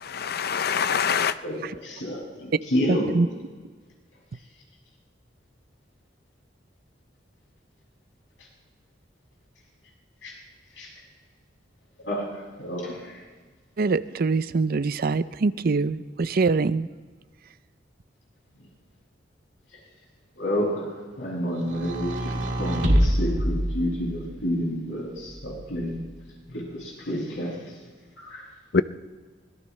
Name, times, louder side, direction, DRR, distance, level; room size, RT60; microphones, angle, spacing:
voice 1, 0.0-1.3 28.7-28.8, left 6 dB, 55° left, 0.6 m, -24 dB
voice 2, 1.4-3.0 10.2-10.3 10.8-10.9 12.0-12.3 12.6-13.2 20.4-26.0 26.5-27.6 28.2-28.4, equal, 80° left, 7.0 m, -29 dB
voice 3, 2.9-3.3 13.8-16.9, right 4 dB, 50° right, 0.5 m, -24 dB
sound 1, 21.6-24.4 25.3-26.2, equal, 75° right, 2.2 m, -26 dB
25.0 x 18.0 x 3.2 m
head